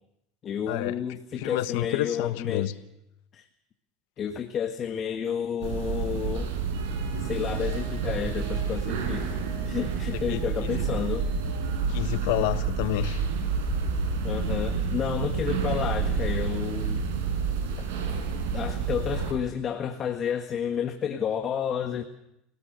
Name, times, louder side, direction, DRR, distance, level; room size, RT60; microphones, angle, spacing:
voice 1, 0.4-2.7 3.3-3.5 4.2-6.5 7.2-9.3 9.6-11.3 14.2-17.0 17.8-17.9 18.5-22.0, left 8 dB, 40° left, 1.6 m, -31 dB
voice 2, 1.4-2.7 10.1-10.7 11.9-13.3, left 14 dB, 80° left, 1.2 m, -29 dB
sound 1, 5.6-19.3, right 5 dB, 80° right, 5.0 m, -29 dB
24.0 x 18.0 x 6.8 m
supercardioid pair, 115°, 0 cm